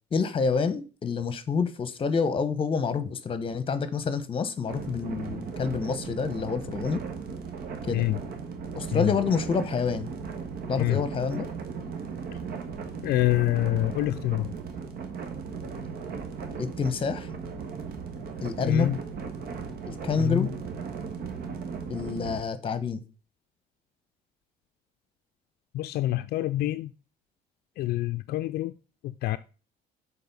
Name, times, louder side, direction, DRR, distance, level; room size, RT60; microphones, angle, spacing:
voice 1, 0.1-7.0 7.8-8.0 8.7-10.1 10.7-11.5 16.6-17.3 18.4-18.9 19.9-20.5 21.9-23.0, left 5 dB, 30° left, 1.0 m, -28 dB
sound 1, 4.7-22.4, right 5 dB, 65° right, 1.4 m, -37 dB
voice 2, 13.0-14.5 18.6-19.0 20.2-20.5 25.7-26.9 27.8-28.7 29.0-29.4, left 16 dB, 70° left, 0.4 m, -26 dB
6.8 x 4.1 x 5.4 m
cardioid pair, 110°, 17 cm